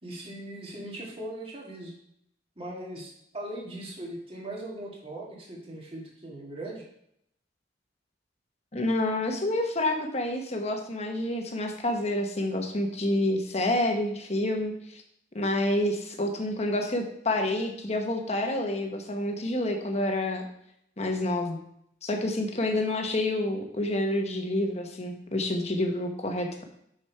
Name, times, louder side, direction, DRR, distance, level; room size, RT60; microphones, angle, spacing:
voice 1, 0.0-1.9 2.6-6.8, right 1 dB, 30° right, -2 dB, 1.9 m, -39 dB
voice 2, 8.7-15.0 15.3-20.5 21.0-21.6 22.0-26.6, left 1 dB, 35° left, 3 dB, 1.1 m, -28 dB
6.4 x 6.3 x 4.6 m, 0.73 s
head